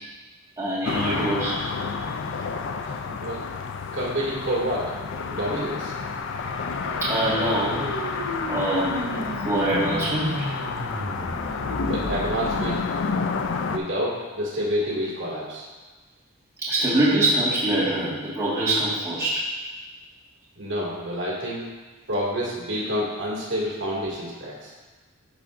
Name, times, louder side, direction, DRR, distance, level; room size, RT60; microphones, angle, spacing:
voice 1, 0.6-1.6 7.0-7.8 8.5-9.0 9.4-10.5 16.6-19.5, right 1 dB, 15° right, -10 dB, 1.7 m, -24 dB
sound 1, 0.9-13.8, left 5 dB, 60° left, 0.4 m, -30 dB
voice 2, 2.8-3.5 3.9-5.0 5.3-5.9 11.4-11.5 11.8-12.8 13.6-15.6 20.5-21.7 22.1-24.7, equal, 60° right, -6 dB, 2.0 m, -28 dB
sound 2, 5.9-12.8, equal, 75° right, 2.0 m, -34 dB
12.5 x 4.8 x 2.5 m, 1.3 s
head